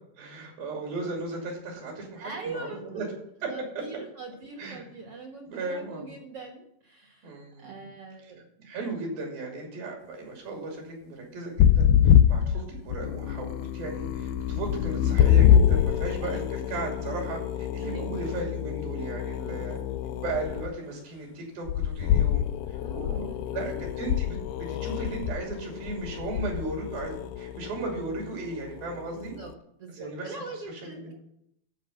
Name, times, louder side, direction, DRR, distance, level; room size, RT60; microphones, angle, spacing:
voice 1, 0.2-3.1 3.4-3.8 4.6-4.8 5.5-6.1 7.2-7.8 8.6-19.8 20.2-23.7 24.0-24.4 24.7-29.4 29.9-31.1, right 3 dB, 80° right, 0 dB, 4.5 m, -36 dB
voice 2, 2.2-3.1 3.5-7.3 7.6-8.5 12.6-12.8 16.2-16.4 17.8-18.2 19.4-20.0 22.8-23.9 29.1-29.5 29.8-31.2, right 3 dB, 55° right, 1 dB, 1.7 m, -42 dB
sound 1, 11.6-20.7 21.7-29.3, left 9 dB, 80° left, 2.2 m, -25 dB
12.5 x 4.7 x 7.9 m, 0.75 s
omnidirectional pair, 4.1 m